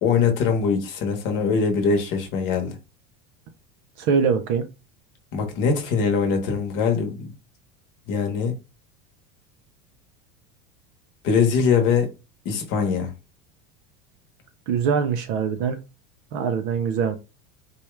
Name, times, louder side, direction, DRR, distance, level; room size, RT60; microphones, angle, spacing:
voice 1, 0.0-2.8 5.3-7.3 8.1-8.6 11.2-12.1 12.4-13.1, left 5 dB, 40° left, 1.0 m, -22 dB
voice 2, 4.0-4.7 14.7-15.8 16.3-17.2, right 6 dB, 35° right, 0.4 m, -23 dB
4.3 x 2.3 x 3.1 m
supercardioid pair, 175°, 29 cm